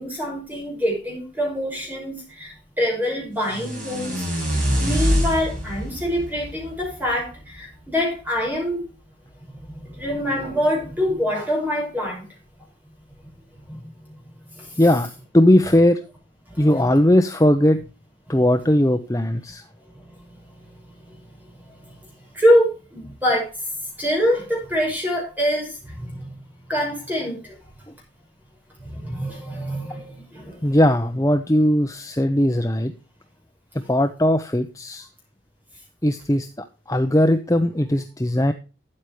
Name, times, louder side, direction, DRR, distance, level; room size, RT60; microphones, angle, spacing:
voice 1, 0.0-4.2 4.8-8.8 9.5-12.3 13.7-13.8 14.6-14.8 16.5-17.0 18.3-18.5 21.6-21.9 22.3-23.5 24.0-26.4 26.7-27.6 28.8-30.8, equal, 10° right, -1 dB, 5.7 m, -25 dB
sound 1, 3.4-7.5, equal, 45° right, 7.5 m, -25 dB
voice 2, 14.8-15.1 15.3-16.0 16.6-17.8 18.3-19.6 30.6-32.9 33.7-35.1 36.0-36.5 36.9-38.5, left 1 dB, 15° left, 6 dB, 0.7 m, -18 dB
13.0 x 9.0 x 3.2 m, 0.33 s
head